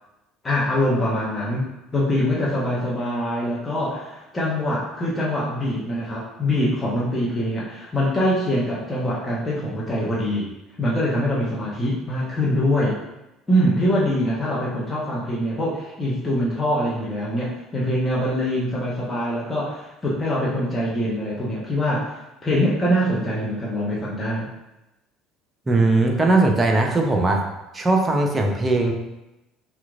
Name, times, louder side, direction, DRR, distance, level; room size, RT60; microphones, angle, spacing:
voice 1, 0.4-10.5 10.8-13.0 13.5-22.1 22.4-24.5, equal, 15° left, -7 dB, 1.0 m, -24 dB
voice 2, 25.7-27.4 27.7-28.9, right 2 dB, 20° right, 2 dB, 0.7 m, -19 dB
5.9 x 2.4 x 2.5 m, 0.95 s
figure-of-eight pair, 60°, 0 cm